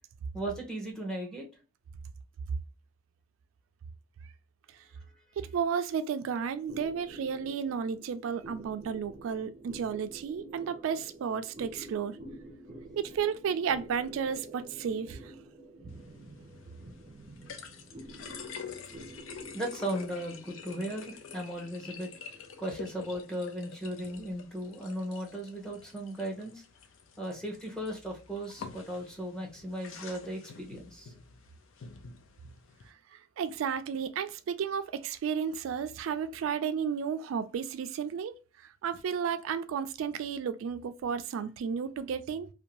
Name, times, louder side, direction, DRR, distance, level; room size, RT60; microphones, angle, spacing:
voice 1, 0.3-1.5 19.5-22.1 22.6-26.6 27.2-31.1, right 1 dB, 5° left, 0.8 m, -36 dB
voice 2, 5.4-12.2 13.0-15.3 33.1-38.3 38.6-42.5, right 7 dB, 90° right, 0.3 m, -33 dB
sound 1, 6.7-25.4, right 1 dB, 30° right, 0.5 m, -49 dB
sound 2, 15.9-32.9, left 6 dB, 85° left, 0.5 m, -48 dB
2.6 x 2.2 x 2.8 m
head